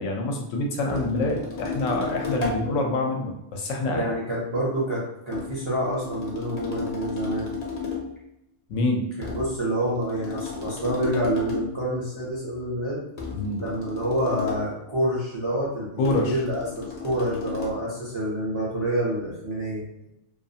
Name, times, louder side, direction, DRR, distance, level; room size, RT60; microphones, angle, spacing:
voice 1, 0.0-4.1 8.7-9.0 13.3-13.6 16.0-16.4 17.7-17.9, left 2 dB, 80° left, 2 dB, 1.0 m, -26 dB
sound 1, 0.9-2.7 5.3-8.2 9.2-11.8 13.2-14.7 16.0-17.8, left 5 dB, 45° left, 0.5 m, -33 dB
voice 2, 3.9-7.5 9.3-13.0 13.6-19.8, right 1 dB, 35° right, -7 dB, 0.4 m, -27 dB
2.5 x 2.3 x 2.7 m, 0.86 s
omnidirectional pair, 1.3 m